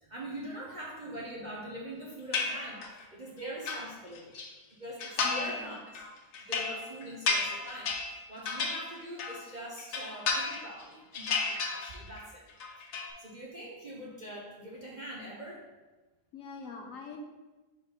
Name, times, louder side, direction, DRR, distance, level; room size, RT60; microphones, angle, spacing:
voice 1, 0.0-2.8 3.1-4.3 4.7-6.0 6.4-12.4 13.2-15.7, right 1 dB, 40° right, -4 dB, 0.7 m, -43 dB
sound 1, 2.3-3.0 3.4-4.5 5.0-5.6 5.9-9.5 9.8-10.8 11.1-12.2 12.5-13.1, left 4 dB, 85° left, 1.4 m, -33 dB
voice 2, 5.2-5.8 16.3-17.2, left 5 dB, 65° left, 2 dB, 1.0 m, -44 dB
4.5 x 4.2 x 5.1 m, 1.2 s
omnidirectional pair, 1.6 m